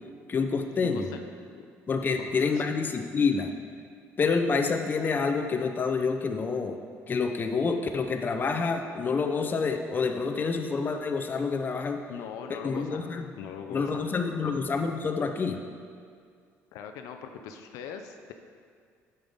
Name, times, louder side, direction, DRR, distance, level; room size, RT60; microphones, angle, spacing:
voice 1, 0.3-1.1 1.9-3.5 4.2-6.8 7.1-12.0 12.6-13.2 13.7-15.6, left 4 dB, 35° left, 6 dB, 0.6 m, -27 dB
voice 2, 0.8-1.2 1.5-1.7 2.2-2.7 12.1-13.1 13.4-14.5 16.7-18.3, left 7 dB, 85° left, 6 dB, 0.4 m, -41 dB
8.7 x 5.5 x 3.5 m, 2.2 s
cardioid pair, 95°, 6 cm